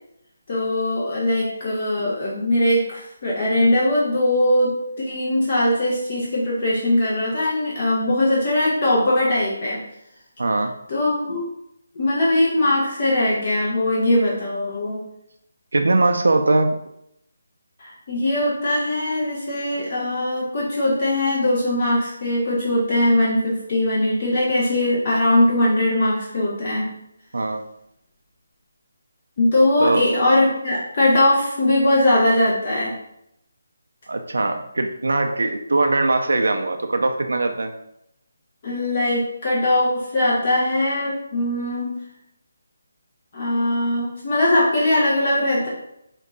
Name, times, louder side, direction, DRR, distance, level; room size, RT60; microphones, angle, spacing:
voice 1, 0.5-9.8 10.9-11.5 11.9-15.0 17.8-26.9 29.4-32.9 38.6-42.0 43.3-45.7, left 1 dB, 40° left, -5 dB, 1.1 m, -20 dB
voice 2, 10.4-10.7 15.7-16.7 27.3-27.6 29.8-30.0 34.1-37.7, right 2 dB, 80° right, 5 dB, 0.5 m, -21 dB
5.2 x 2.6 x 3.7 m, 0.79 s
figure-of-eight pair, 165°, 0 cm